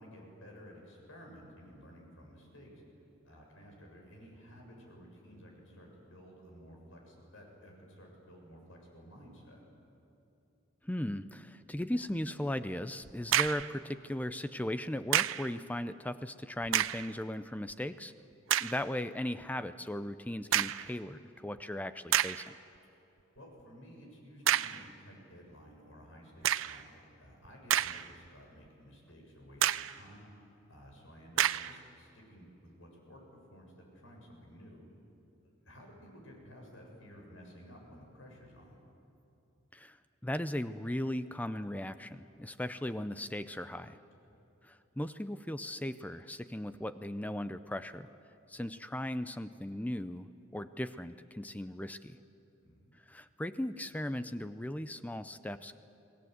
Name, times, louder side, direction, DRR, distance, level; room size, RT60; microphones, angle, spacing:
voice 1, 0.0-2.8 3.2-9.6 23.4-30.3 30.7-34.9 35.4-38.7 42.3-42.4 44.1-44.4 52.6-53.0, equal, 80° left, 1 dB, 7.1 m, -54 dB
voice 2, 10.8-18.1 18.6-22.6 39.7-40.0 40.2-44.0 44.6-48.1 48.5-52.2 53.1-55.8, left 1 dB, 10° left, 12 dB, 0.5 m, -37 dB
sound 1, 13.0-13.7 15.1-15.5 16.6-17.1 17.7-17.8 18.5-18.8 20.5-20.9 21.6-21.7 22.1-22.5 24.5-24.9 26.4-26.8 27.4-28.3 28.7-28.8 29.6-30.0 31.4-31.8, right 11 dB, 85° right, 0.5 m, -29 dB
29.5 x 19.5 x 8.0 m, 2.9 s
head